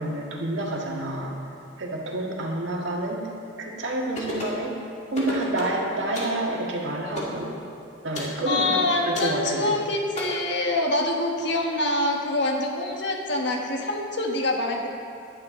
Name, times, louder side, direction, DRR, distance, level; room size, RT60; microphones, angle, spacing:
voice 1, 0.0-1.3 1.8-3.3 3.6-4.8 5.1-7.6 8.0-9.6, right 1 dB, 65° right, -1 dB, 1.8 m, -28 dB
sound 1, 4.2-4.6 5.1-5.8 6.1-6.4 7.2-7.4 8.1-8.4 9.1-9.4 10.2-10.3, left 2 dB, 35° left, 2.3 m, -33 dB
voice 2, 8.5-14.9, left 2 dB, 60° left, 1 dB, 1.5 m, -25 dB
15.5 x 11.0 x 3.8 m, 2.5 s
head